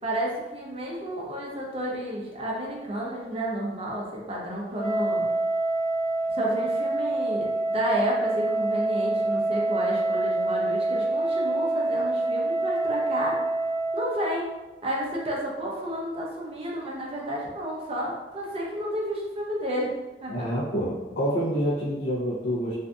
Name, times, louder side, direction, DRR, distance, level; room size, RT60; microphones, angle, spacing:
voice 1, 0.0-5.3 6.3-13.4 13.9-14.5 14.8-19.9 20.2-20.5, equal, 35° right, -3 dB, 0.5 m, -31 dB
Wind instrument woodwind instrument, 4.7-14.1, right 2 dB, 25° left, 1.0 m, -26 dB
voice 2, 20.3-22.8, equal, 65° left, -9 dB, 0.7 m, -27 dB
2.5 x 2.4 x 2.3 m, 1.1 s
head